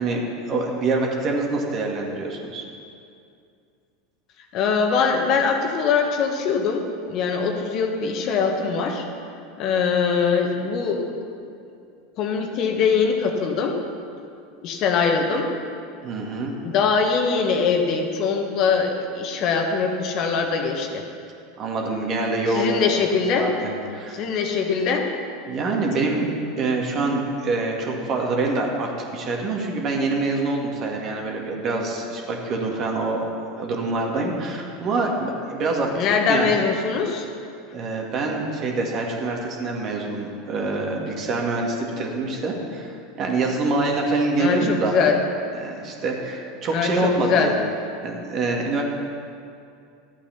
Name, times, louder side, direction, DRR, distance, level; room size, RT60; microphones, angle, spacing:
voice 1, 0.0-2.7 16.0-16.5 21.6-23.0 23.4-24.2 25.5-33.2 33.6-35.9 36.2-36.5 37.7-44.9 45.5-47.5 48.0-48.8, right 3 dB, 45° right, 0 dB, 2.1 m, -25 dB
voice 2, 4.5-9.1 9.6-11.2 12.2-13.7 14.6-15.5 16.6-21.0 22.5-23.5 24.1-25.1 35.9-37.3 44.4-45.2 46.7-47.5, left 5 dB, 50° left, 3 dB, 1.4 m, -22 dB
12.5 x 8.6 x 5.9 m, 2.4 s
hypercardioid pair, 85°, 0 cm